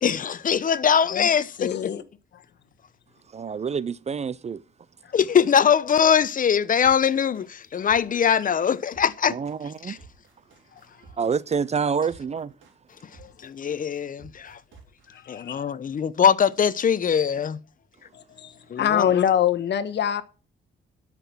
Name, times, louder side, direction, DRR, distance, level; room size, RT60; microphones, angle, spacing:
voice 1, 0.0-1.8 5.1-9.4 9.8-10.0 13.4-14.6 15.3-17.6 18.7-19.2, left 7 dB, 45° left, 0.9 m, -22 dB
voice 2, 1.6-2.0 5.0-5.1 13.2-13.3 15.1-15.6 18.1-20.2, left 9 dB, 60° left, 1.3 m, -25 dB
voice 3, 3.3-4.6 9.3-10.0 11.2-12.5, right 6 dB, 35° right, 0.5 m, -27 dB
sound 1, 6.8-15.2, right 4 dB, 75° right, 3.4 m, -52 dB
12.0 x 6.1 x 6.1 m
cardioid pair, 90°, 20 cm